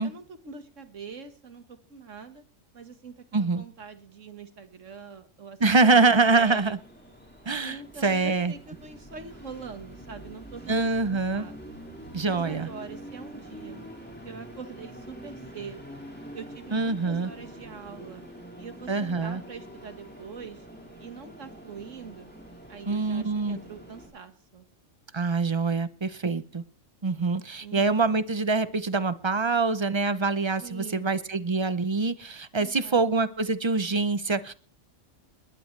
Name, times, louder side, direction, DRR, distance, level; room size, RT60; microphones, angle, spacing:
voice 1, 0.0-2.4 2.7-5.6 5.8-6.8 7.6-11.6 12.2-13.8 14.2-16.0 16.3-18.2 18.6-20.7 21.0-22.3 22.7-24.7 27.6-28.1 30.6-31.1 32.5-33.3, right 5 dB, 80° right, 8 dB, 1.9 m, -43 dB
voice 2, 3.3-3.6 5.6-6.8 7.5-7.8 8.0-8.5 10.7-11.4 12.1-12.7 16.7-17.3 18.9-19.4 22.9-23.6 25.1-26.6 27.0-34.5, right 3 dB, 30° right, 14 dB, 0.6 m, -25 dB
Train, 5.6-24.1, equal, 10° left, 5.0 m, -45 dB
20.5 x 19.5 x 3.3 m, 0.43 s
omnidirectional pair, 1.3 m